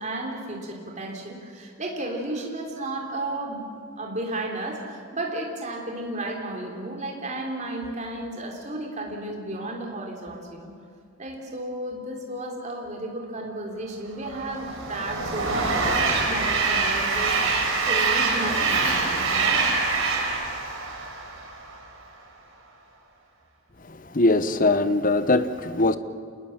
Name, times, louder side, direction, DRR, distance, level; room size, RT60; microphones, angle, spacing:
voice 1, 0.0-3.7 4.0-10.7 11.2-17.3 17.9-19.6, right 1 dB, 35° right, 0 dB, 3.4 m, -33 dB
Train, 14.2-21.7, right 4 dB, 75° right, 5.1 m, -25 dB
voice 2, 23.9-26.0, left 2 dB, 40° left, 12 dB, 0.9 m, -21 dB
27.5 x 20.0 x 7.4 m, 2.2 s
head